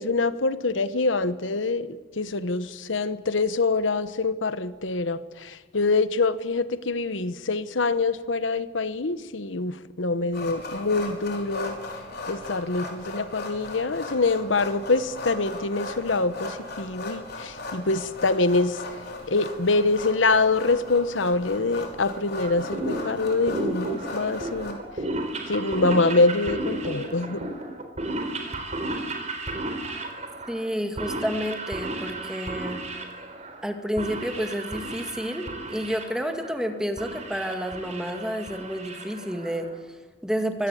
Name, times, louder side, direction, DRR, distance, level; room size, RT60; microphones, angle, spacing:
voice 1, 0.0-11.8 12.3-18.8 19.3-24.8 25.5-27.5, left 3 dB, 85° left, 13 dB, 1.1 m, -25 dB
sound 1, 10.3-24.7, left 2 dB, 55° left, 4.5 m, -37 dB
sound 2, 22.4-39.8, right 2 dB, 35° right, 4.2 m, -34 dB
voice 2, 30.5-32.8 33.6-40.7, equal, 5° right, 5 dB, 2.2 m, -30 dB
24.0 x 17.5 x 8.6 m, 1.4 s
head